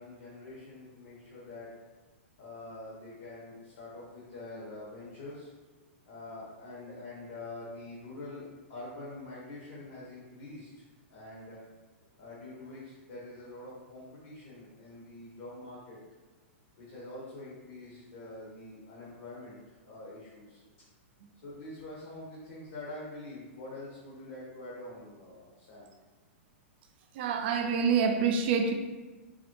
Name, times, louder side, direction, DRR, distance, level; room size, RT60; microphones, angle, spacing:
voice 1, 0.0-1.7 2.4-5.5 6.0-11.6 12.2-16.0 16.8-20.6 21.4-25.9, left 2 dB, 60° left, -6 dB, 1.0 m, -45 dB
voice 2, 27.1-28.7, right 6 dB, 55° right, 5 dB, 0.4 m, -26 dB
3.9 x 2.0 x 3.0 m, 1.2 s
hypercardioid pair, 130°, 7 cm